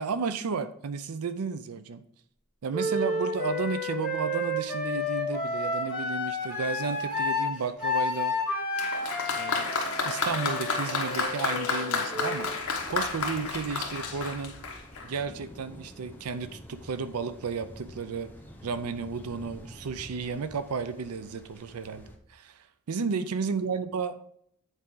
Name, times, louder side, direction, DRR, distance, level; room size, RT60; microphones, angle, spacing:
voice 1, 0.0-2.0 2.6-8.3 9.3-9.8 10.0-12.5 12.9-14.6 15.0-18.3 18.6-24.2, right 5 dB, 85° right, 12 dB, 0.5 m, -33 dB
Wind instrument woodwind instrument, 2.7-12.5, left 2 dB, 5° right, 2.8 m, -31 dB
Applause, 8.8-15.2 16.1-16.2, left 4 dB, 75° left, 1.2 m, -31 dB
sound 1, 12.3-22.2, equal, 10° left, 0.9 m, -48 dB
8.1 x 4.8 x 3.8 m, 0.66 s
head